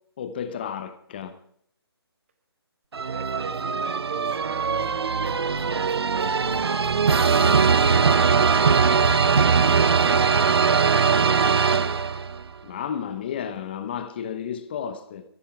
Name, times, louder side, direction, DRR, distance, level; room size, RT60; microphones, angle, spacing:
voice 1, 0.2-1.4 12.6-15.2, left 8 dB, 25° left, 0.9 m, -32 dB
sound 1, 2.9-12.4, right 5 dB, 70° right, 1.0 m, -21 dB
voice 2, 3.1-5.2 6.3-8.7 10.0-11.3, right 6 dB, 30° right, 1.0 m, -41 dB
sound 2, 5.3-10.3, left 1 dB, 10° right, 2.4 m, -47 dB
15.5 x 15.0 x 4.6 m
hypercardioid pair, 170°, 14 cm